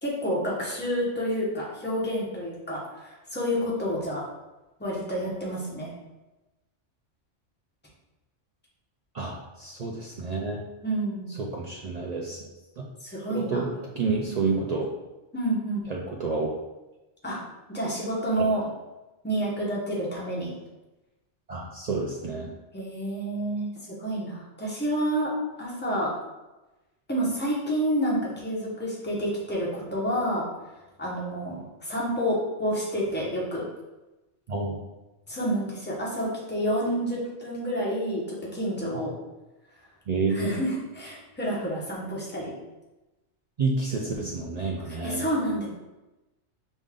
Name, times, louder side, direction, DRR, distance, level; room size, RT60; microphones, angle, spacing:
voice 1, 0.0-4.2 4.8-5.9 10.8-11.3 13.0-13.6 15.3-15.9 17.2-17.4 17.7-18.6 19.2-20.5 22.7-25.3 25.6-26.1 27.1-30.4 31.0-33.6 35.3-39.1 40.3-42.5 44.9-45.7, equal, 10° left, -5 dB, 1.0 m, -29 dB
voice 2, 9.1-10.6 11.3-12.4 13.3-13.7 14.0-14.9 15.9-16.5 18.4-18.5 21.5-22.5 34.5-34.8 40.1-40.6 43.6-45.3, right 3 dB, 75° right, -2 dB, 0.3 m, -29 dB
5.1 x 2.5 x 3.6 m, 1.0 s
omnidirectional pair, 1.3 m